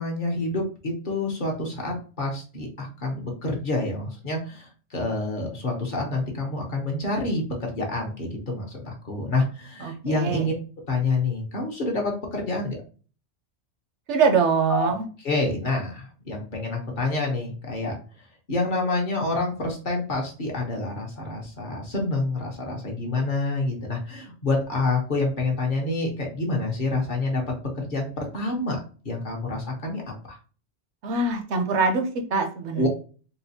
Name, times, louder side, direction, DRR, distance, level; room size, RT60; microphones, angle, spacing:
voice 1, 0.0-10.5 10.9-12.8 14.7-14.9 15.2-17.9 18.5-27.4 27.8-28.8 29.0-30.1 32.7-32.9, left 2 dB, 50° left, 0 dB, 1.0 m, -27 dB
voice 2, 9.8-10.5 14.1-15.0 31.0-32.9, right 4 dB, 75° right, 5 dB, 1.0 m, -23 dB
4.0 x 2.2 x 2.7 m, 0.38 s
omnidirectional pair, 1.2 m